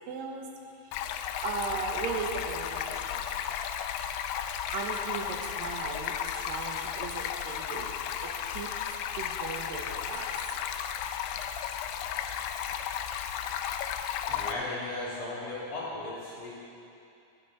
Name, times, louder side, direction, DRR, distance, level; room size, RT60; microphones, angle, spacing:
voice 1, 0.1-0.5 0.8-1.0 1.4-3.4 4.7-8.0 8.2-8.7 9.2-10.3, right 5 dB, 80° right, 1 dB, 2.6 m, -37 dB
Stream, 0.9-14.5, left 9 dB, 85° left, 2.3 m, -34 dB
voice 2, 14.3-16.5, left 2 dB, 50° left, -7 dB, 3.4 m, -36 dB
14.5 x 10.5 x 4.0 m, 2.7 s
omnidirectional pair, 4.1 m